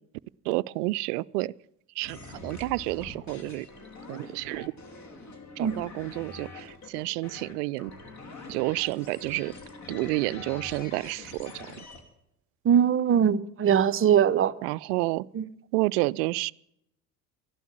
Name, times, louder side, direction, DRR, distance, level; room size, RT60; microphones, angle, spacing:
voice 1, 0.5-1.5 2.0-3.7 4.1-4.7 5.6-7.9 8.5-9.5 9.9-11.7 14.6-15.2 15.7-16.5, right 21 dB, 70° right, 0.5 m, -30 dB
sound 1, 2.0-12.0, left 3 dB, 35° left, 3.1 m, -44 dB
voice 2, 12.6-14.5 15.3-15.5, right 8 dB, 25° right, 0.7 m, -21 dB
13.5 x 12.0 x 7.1 m
hypercardioid pair, 75°, 48 cm